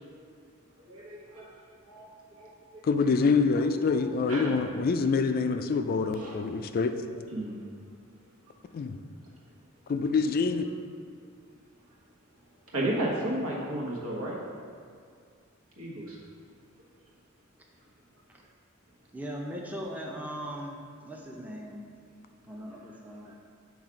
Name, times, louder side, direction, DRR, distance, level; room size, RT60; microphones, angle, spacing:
voice 1, 0.9-1.5 1.9-2.9 4.3-4.5 6.0-6.3 7.3-7.6 12.7-14.4 15.8-16.2, right 1 dB, 90° right, -4 dB, 1.4 m, -33 dB
voice 2, 2.8-7.0 8.7-9.0 9.9-10.6, left 4 dB, 45° left, 8 dB, 0.3 m, -26 dB
voice 3, 19.1-20.8 21.0-21.8 22.5-23.3, equal, 5° right, -1 dB, 0.6 m, -39 dB
7.2 x 3.3 x 5.0 m, 2.2 s
head